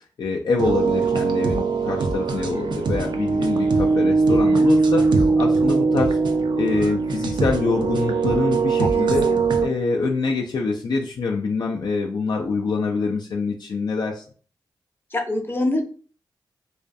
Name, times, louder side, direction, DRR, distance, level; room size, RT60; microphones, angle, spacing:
voice 1, 0.2-5.1 5.4-6.2 6.6-9.3 9.6-14.2, left 4 dB, 60° left, 0 dB, 0.4 m, -25 dB
sound 1, 0.6-9.7, right 4 dB, 65° right, 0.4 m, -21 dB
voice 2, 8.8-9.4 15.1-15.8, left 2 dB, 25° left, 2 dB, 0.7 m, -25 dB
2.3 x 2.2 x 2.5 m, 0.42 s
cardioid pair, 50°, 8 cm